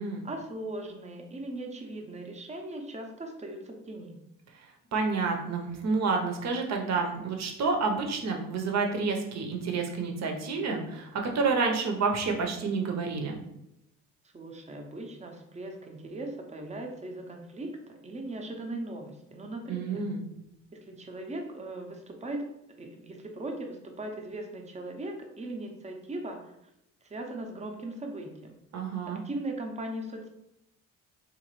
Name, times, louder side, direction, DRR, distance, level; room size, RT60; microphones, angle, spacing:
voice 1, 0.2-4.2 14.3-20.1 20.7-22.4 22.8-26.5 27.0-28.6 29.1-30.3, right 1 dB, 25° right, 2 dB, 0.7 m, -39 dB
voice 2, 4.9-13.4 19.7-20.2 28.7-29.2, right 4 dB, 60° right, 3 dB, 0.8 m, -29 dB
3.8 x 2.5 x 3.0 m, 0.82 s
cardioid pair, 90°, 30 cm